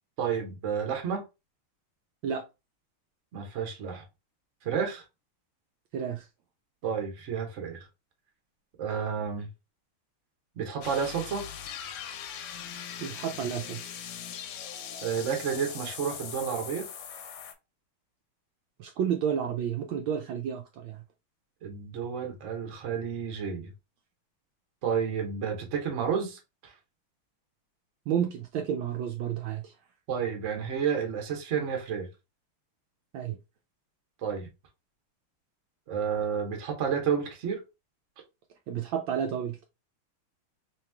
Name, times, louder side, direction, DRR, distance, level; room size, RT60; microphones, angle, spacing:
voice 1, 0.2-1.2 3.3-4.0 4.6-5.0 6.8-7.9 8.8-9.5 10.6-11.4 15.0-16.9 21.6-23.7 24.8-26.7 30.1-32.1 34.2-34.5 35.9-37.6, right 7 dB, 50° right, 1.0 m, -31 dB
voice 2, 5.9-6.3 13.0-13.9 18.8-21.0 28.1-29.7 33.1-33.4 38.7-39.6, right 8 dB, 75° right, 1.2 m, -31 dB
sound 1, 10.8-17.5, left 8 dB, 90° left, 1.6 m, -40 dB
3.4 x 3.0 x 3.4 m
omnidirectional pair, 2.3 m